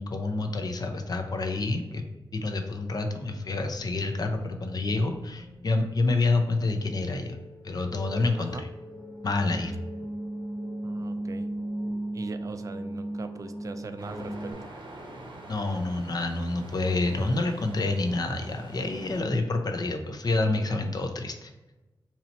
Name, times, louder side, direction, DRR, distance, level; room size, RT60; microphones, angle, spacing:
voice 1, 0.0-2.1 2.3-7.4 7.6-8.7 9.2-9.7 15.5-21.5, left 2 dB, 50° left, 5 dB, 0.5 m, -28 dB
sound 1, 3.1-14.5, right 1 dB, 70° left, 0.9 m, -38 dB
voice 2, 10.8-11.5 12.1-14.7, right 3 dB, 40° right, 8 dB, 0.3 m, -41 dB
sound 2, 14.0-19.2, right 1 dB, 70° right, 0.8 m, -45 dB
2.9 x 2.8 x 4.2 m, 1.1 s
wide cardioid pair, 85°, 9 cm